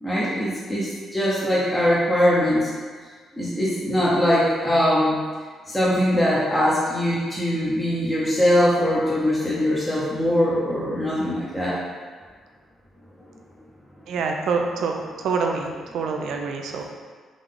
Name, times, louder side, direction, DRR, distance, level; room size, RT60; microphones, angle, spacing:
voice 1, 0.0-2.7 3.4-5.2 5.7-11.8, equal, 10° left, -8 dB, 0.8 m, -21 dB
voice 2, 14.1-16.8, right 4 dB, 75° right, 2 dB, 0.5 m, -26 dB
3.8 x 3.1 x 3.6 m, 1.5 s
cardioid pair, 90°, 0 cm